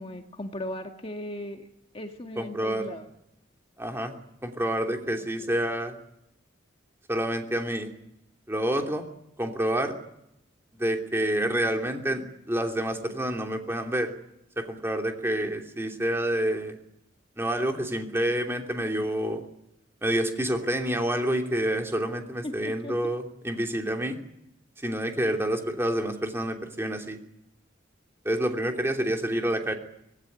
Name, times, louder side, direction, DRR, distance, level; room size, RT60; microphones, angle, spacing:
voice 1, 0.0-1.7 1.9-3.1 5.4-5.5 22.4-23.0, left 1 dB, 30° left, 4 dB, 1.9 m, -37 dB
voice 2, 2.4-2.9 3.8-4.2 4.4-6.0 7.1-7.9 8.5-9.1 9.4-10.0 10.8-12.2 12.5-14.1 14.6-16.8 17.4-19.4 20.0-24.2 24.8-27.2 28.2-29.7, right 1 dB, 15° right, 3 dB, 2.9 m, -28 dB
25.0 x 19.0 x 9.5 m, 0.80 s
head